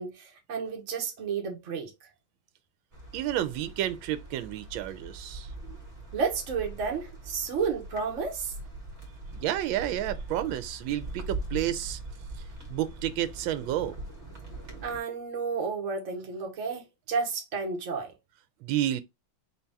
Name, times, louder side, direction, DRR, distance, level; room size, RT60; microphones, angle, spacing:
voice 1, 0.0-1.9 6.1-8.5 14.8-18.1, right 5 dB, 50° right, 1.0 m, -31 dB
sound 1, 2.9-15.0, right 2 dB, 30° right, 1.5 m, -41 dB
voice 2, 3.1-5.8 9.3-12.0 12.7-14.0 14.6-14.7 18.6-19.0, right 12 dB, 75° right, 1.3 m, -31 dB
4.4 x 2.8 x 3.4 m
omnidirectional pair, 2.3 m